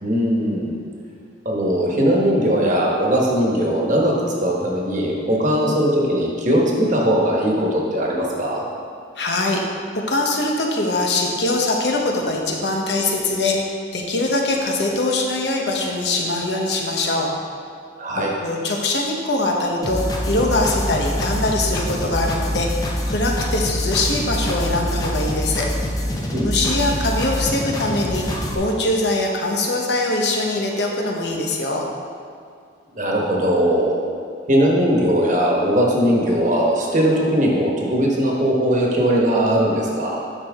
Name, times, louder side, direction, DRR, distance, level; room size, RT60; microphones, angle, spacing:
voice 1, 0.0-0.8 1.4-8.6 18.0-18.3 26.3-26.7 32.9-34.0 34.5-40.2, equal, 45° right, -2 dB, 1.3 m, -19 dB
voice 2, 9.2-9.6 10.1-17.3 18.4-22.7 23.1-25.7 26.4-31.8, left 2 dB, 65° left, 0 dB, 1.1 m, -22 dB
sound 1, 19.8-28.5, equal, 20° left, 0.7 m, -25 dB
9.6 x 6.3 x 3.6 m, 2.2 s
head